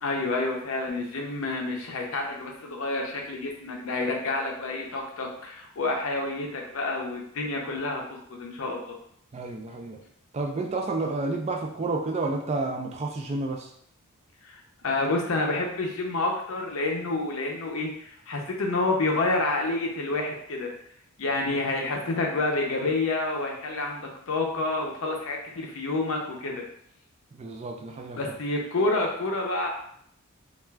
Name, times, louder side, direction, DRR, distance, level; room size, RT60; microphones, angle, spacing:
voice 1, 0.0-9.0 14.4-20.7 21.2-26.6 28.1-29.7, left 2 dB, 65° left, 1 dB, 0.5 m, -29 dB
voice 2, 9.3-10.0 10.3-13.7 21.5-21.6 27.3-28.2, right 3 dB, 30° right, 2 dB, 0.3 m, -30 dB
2.4 x 2.3 x 3.2 m, 0.67 s
head